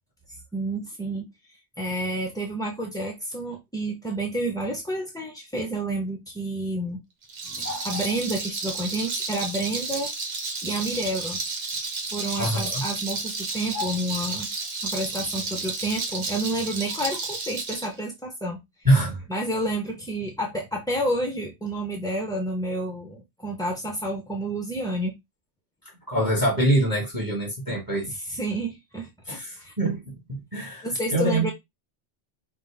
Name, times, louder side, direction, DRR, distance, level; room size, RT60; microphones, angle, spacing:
voice 1, 0.3-7.0 7.4-10.1 10.6-11.4 12.1-14.5 14.8-18.6 19.3-25.1 28.1-29.7 30.8-31.5, right 1 dB, 5° left, 0.4 m, -30 dB
Rattle, 7.2-17.9, right 4 dB, 80° right, 1.3 m, -32 dB
voice 2, 7.6-8.1 12.4-12.8 13.7-13.9 18.8-19.2 26.1-28.1 29.3-31.5, right 1 dB, 20° right, 1.3 m, -25 dB
5.3 x 2.4 x 3.3 m
omnidirectional pair, 1.2 m